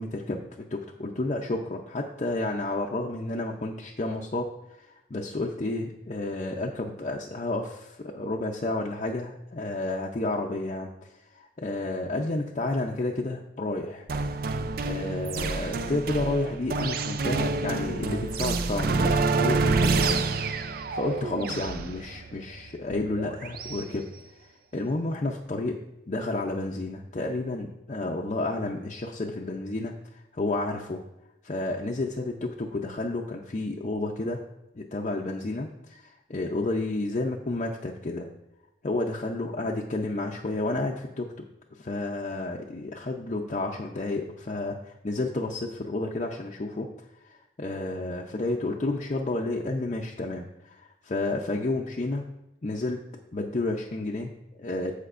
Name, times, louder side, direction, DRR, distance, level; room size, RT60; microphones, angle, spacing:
voice 1, 0.0-14.1 14.8-20.2 20.9-24.0 24.4-25.8 26.1-31.0 31.4-34.4 34.7-38.3 38.8-41.4 41.7-46.9 47.2-52.3 52.6-53.0 53.3-54.9, left 2 dB, 40° left, -1 dB, 0.5 m, -31 dB
sound 1, 14.1-23.8, right 3 dB, 50° right, 0.4 m, -28 dB
14.5 x 5.1 x 2.5 m, 0.92 s
head